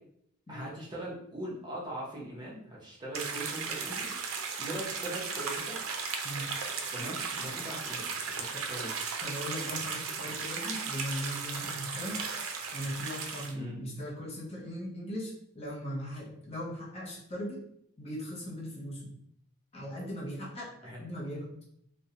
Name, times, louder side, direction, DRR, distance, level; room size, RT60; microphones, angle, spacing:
voice 1, 0.5-4.2 4.6-5.8 6.9-8.9 13.5-13.8 20.8-21.0, right 1 dB, 20° right, -5 dB, 0.6 m, -40 dB
sound 1, 3.1-13.5, right 5 dB, 90° right, 0.4 m, -36 dB
voice 2, 9.2-12.2 12.7-17.6 18.0-19.1 19.7-21.5, equal, 30° left, -5 dB, 0.6 m, -39 dB
2.4 x 2.1 x 2.7 m, 0.72 s
head